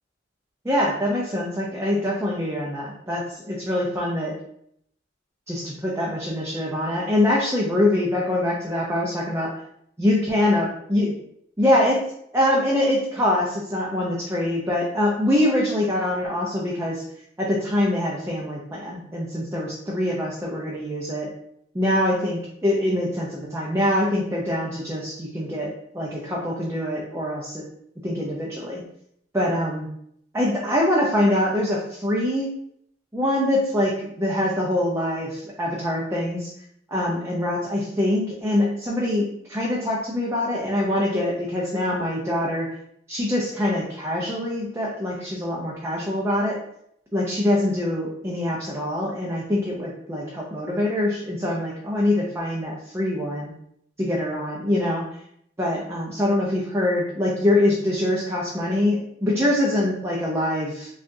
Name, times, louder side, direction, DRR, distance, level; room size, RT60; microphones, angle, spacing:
voice 1, 0.6-4.3 5.5-9.5 10.0-11.1 11.6-12.0 12.3-17.0 17.4-21.3 21.7-25.7 25.9-27.6 28.0-28.8 29.3-29.9 30.3-32.5 33.1-36.5 36.9-42.7 43.1-46.6 47.1-53.5 54.0-55.1 55.6-60.9, left 1 dB, 15° right, -3 dB, 0.5 m, -24 dB
5.2 x 2.4 x 2.6 m, 0.71 s
head